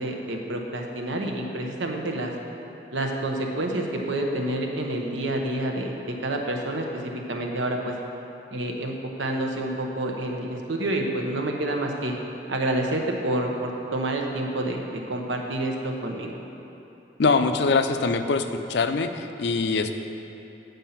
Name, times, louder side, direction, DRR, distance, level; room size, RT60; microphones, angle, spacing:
voice 1, 0.0-2.3 2.9-7.9 8.5-8.9 9.2-12.2 12.5-16.4, right 1 dB, 85° right, 2 dB, 1.0 m, -28 dB
voice 2, 17.2-19.9, left 4 dB, 65° left, 8 dB, 0.4 m, -23 dB
9.0 x 5.4 x 5.7 m, 2.9 s
head